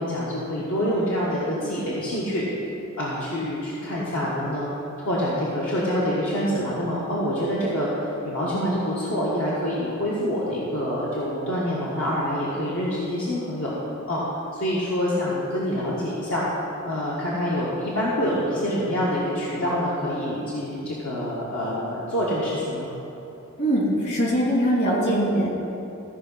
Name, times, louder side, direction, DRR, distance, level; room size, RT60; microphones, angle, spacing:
voice 1, 0.0-2.5 3.0-4.7 5.0-13.7 14.1-14.2 14.5-16.4 16.8-22.9, equal, 75° left, -7 dB, 1.5 m, -26 dB
voice 2, 23.6-25.5, equal, 55° left, -4 dB, 2.6 m, -22 dB
14.5 x 5.0 x 5.5 m, 2.9 s
head